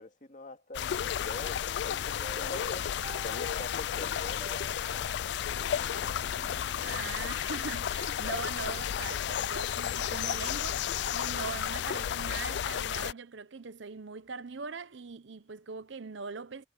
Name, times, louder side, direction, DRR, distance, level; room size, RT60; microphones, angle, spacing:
voice 1, 0.0-2.9 3.2-4.7, left 2 dB, 40° left, 2.2 m, -44 dB
sound 1, 0.7-13.1, left 9 dB, 60° left, 0.3 m, -33 dB
sound 2, 2.2-8.4, right 2 dB, 30° right, 4.5 m, -50 dB
voice 2, 6.8-16.6, right 5 dB, 70° right, 0.8 m, -41 dB
head